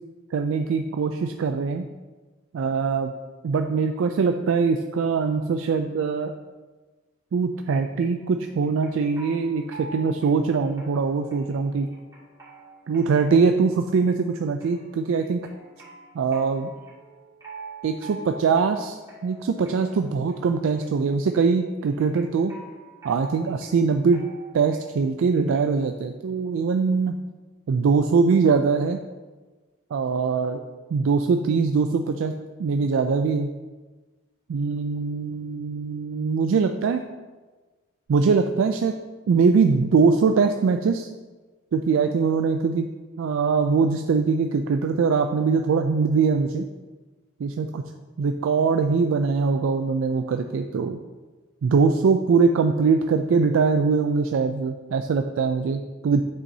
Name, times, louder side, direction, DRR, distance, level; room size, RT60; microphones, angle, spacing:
voice 1, 0.3-1.9 2.5-3.1 3.4-6.3 7.3-11.9 12.9-15.5 16.1-16.7 17.8-22.5 23.0-24.2 24.5-27.2 27.7-29.0 29.9-30.6 30.9-32.3 32.6-33.5 34.5-37.0 38.1-38.9 39.3-41.1 41.7-42.9 43.2-46.6 47.4-47.8 48.2-51.0 51.6-56.2, right 5 dB, 70° right, 6 dB, 0.3 m, -22 dB
sound 1, 8.2-25.8, right 2 dB, 15° right, 2.1 m, -46 dB
7.9 x 5.9 x 2.7 m, 1.3 s
head